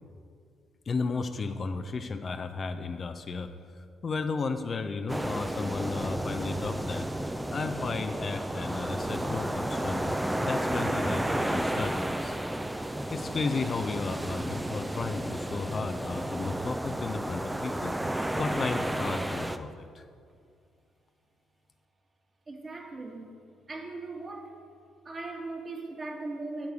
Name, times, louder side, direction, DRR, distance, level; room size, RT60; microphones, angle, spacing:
voice 1, 0.9-3.5 4.0-7.1 7.5-11.9 12.2-12.4 13.1-17.9 18.4-19.7 19.9-20.0, left 4 dB, 40° left, 8 dB, 0.6 m, -33 dB
sound 1, 5.1-19.6, right 1 dB, 10° right, 0.6 m, -32 dB
voice 2, 22.5-23.3 23.7-24.6 25.1-26.7, right 2 dB, 35° right, 1 dB, 1.8 m, -38 dB
11.5 x 4.7 x 8.3 m, 2.3 s
hypercardioid pair, 45°, 0 cm